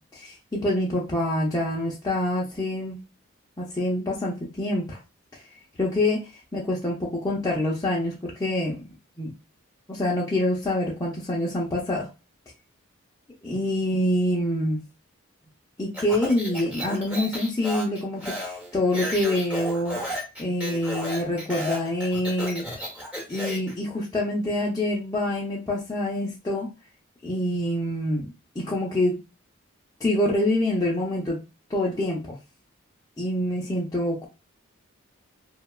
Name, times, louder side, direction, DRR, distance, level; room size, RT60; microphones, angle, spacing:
voice 1, 0.1-3.0 3.6-5.0 5.3-5.4 5.8-6.2 6.5-8.8 9.2-9.3 9.9-12.1 13.4-14.8 15.8-20.0 20.4-22.6 23.3-26.7 27.2-28.3 28.6-29.2 30.0-31.4 31.7-32.2 33.2-34.3, left 1 dB, 15° left, -5 dB, 0.5 m, -26 dB
Speech, 15.9-23.7, equal, 5° right, 0.8 m, -33 dB
2.8 x 2.2 x 2.3 m, 0.28 s
head